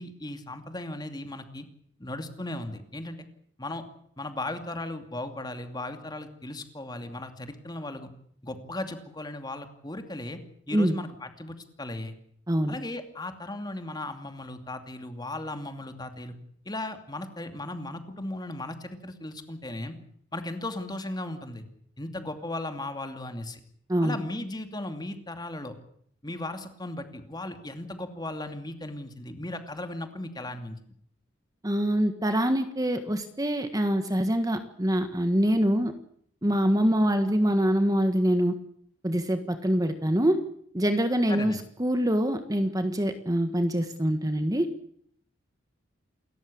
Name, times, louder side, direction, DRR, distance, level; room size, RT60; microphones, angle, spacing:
voice 1, 0.0-1.6 2.0-3.2 3.6-3.8 4.2-8.1 8.4-10.4 10.7-12.1 12.7-16.3 16.7-20.0 20.3-21.6 22.0-23.6 24.0-25.7 26.2-30.8 41.3-41.6, left 1 dB, 20° left, 7 dB, 2.6 m, -36 dB
voice 2, 12.5-12.8 23.9-24.2 31.6-35.9 36.4-38.6 39.0-40.4 40.7-44.7, equal, 20° right, 8 dB, 1.5 m, -25 dB
28.5 x 14.0 x 8.6 m, 0.65 s
head